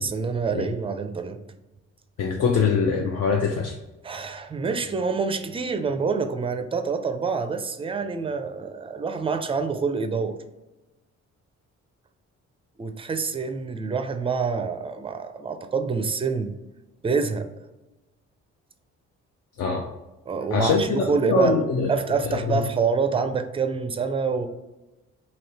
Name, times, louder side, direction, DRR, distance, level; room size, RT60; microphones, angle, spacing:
voice 1, 0.0-1.4 4.0-10.4 12.8-16.5 17.0-17.5 20.3-21.6 21.9-24.5, right 5 dB, 20° right, 8 dB, 0.4 m, -26 dB
voice 2, 2.2-3.8 19.6-19.9 20.5-21.9 22.3-22.7, left 5 dB, 55° left, 1 dB, 0.5 m, -23 dB
3.1 x 2.9 x 4.2 m, 1.0 s
cardioid pair, 90°, 30 cm